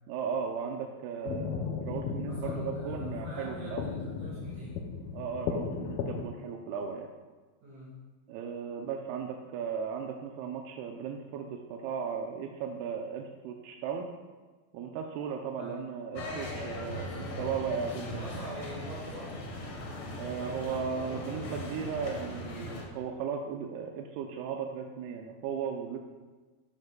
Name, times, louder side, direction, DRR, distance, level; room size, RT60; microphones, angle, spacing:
voice 1, 0.1-3.8 5.1-7.1 8.3-14.1 14.7-18.3 20.1-26.0, right 6 dB, 90° right, 2 dB, 2.6 m, -36 dB
sound 1, 1.3-6.2, left 5 dB, 80° left, 2.4 m, -36 dB
voice 2, 2.2-4.8 7.6-8.1 15.6-15.8 16.9-19.4, right 1 dB, 60° right, -5 dB, 3.0 m, -45 dB
sound 2, 16.1-22.9, left 1 dB, 60° left, 1.4 m, -39 dB
13.0 x 9.3 x 2.2 m, 1.3 s
omnidirectional pair, 4.4 m